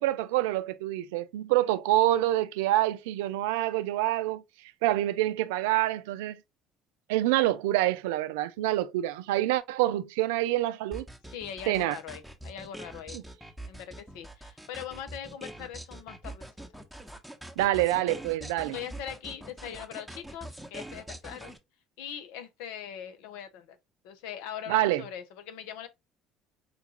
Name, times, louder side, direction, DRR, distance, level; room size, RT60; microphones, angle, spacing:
voice 1, 0.0-4.4 4.8-6.4 7.1-11.1 11.7-12.0 13.1-13.2 17.6-18.8 24.7-25.0, right 15 dB, 80° right, 0.3 m, -26 dB
sound 1, 10.9-21.6, right 1 dB, ahead, 0.9 m, -43 dB
voice 2, 11.3-13.2 13.6-16.5 18.7-21.6 22.0-23.8 24.0-25.9, left 9 dB, 75° left, 0.7 m, -41 dB
5.2 x 2.4 x 2.8 m
hypercardioid pair, 65°, 0 cm